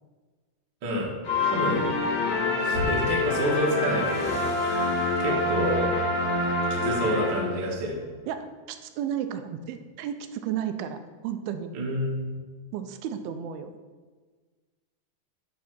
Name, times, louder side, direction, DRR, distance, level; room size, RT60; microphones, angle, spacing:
voice 1, 0.8-1.1 1.4-1.9 2.6-5.9 6.7-8.0 11.7-12.3, equal, 60° right, -2 dB, 1.3 m, -29 dB
sound 1, 1.2-7.8, left 2 dB, 85° left, 4.8 m, -26 dB
voice 2, 8.3-11.7 12.7-13.7, right 9 dB, 85° right, 8 dB, 2.4 m, -33 dB
9.5 x 3.6 x 5.9 m, 1.4 s
omnidirectional pair, 4.4 m